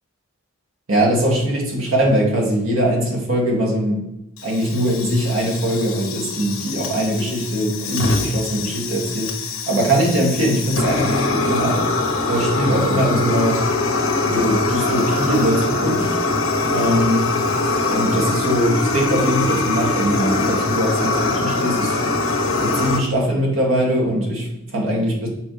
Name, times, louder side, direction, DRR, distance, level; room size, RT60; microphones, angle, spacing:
voice 1, 0.9-4.0 4.4-9.3 9.7-11.8 12.2-13.6 14.2-16.1 16.7-17.3 17.9-22.0 22.6-25.3, right 1 dB, 70° right, -2 dB, 2.2 m, -21 dB
Fire, 4.4-23.0, left 3 dB, 80° left, 1.2 m, -22 dB
6.8 x 5.4 x 3.3 m, 0.90 s
head